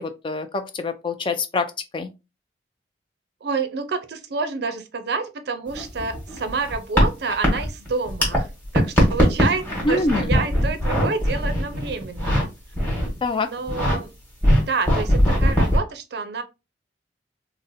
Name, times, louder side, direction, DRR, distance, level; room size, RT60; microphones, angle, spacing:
voice 1, 0.0-2.1 9.8-10.3 13.2-13.5, left 3 dB, 25° left, 0.3 m, -25 dB
voice 2, 3.4-8.5 8.7-12.5 13.4-14.1 14.6-16.4, right 4 dB, 55° right, 0.5 m, -28 dB
sound 1, 5.7-8.4 8.6-12.4 12.7-13.2 13.6-14.0 14.4-15.8, equal, 10° left, 1.2 m, -20 dB
3.8 x 2.0 x 2.6 m
head